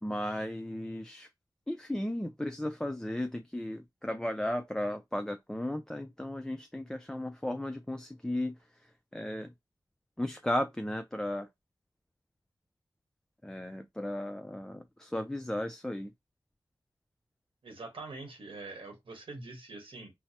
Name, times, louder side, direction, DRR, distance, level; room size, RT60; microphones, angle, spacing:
voice 1, 0.0-1.3 1.7-8.6 9.1-9.5 10.2-11.5 13.4-16.1, left 1 dB, 5° left, 0.4 m, -35 dB
voice 2, 17.6-20.1, right 3 dB, 85° right, 1.1 m, -44 dB
4.5 x 2.0 x 2.8 m
cardioid pair, 55°, 9 cm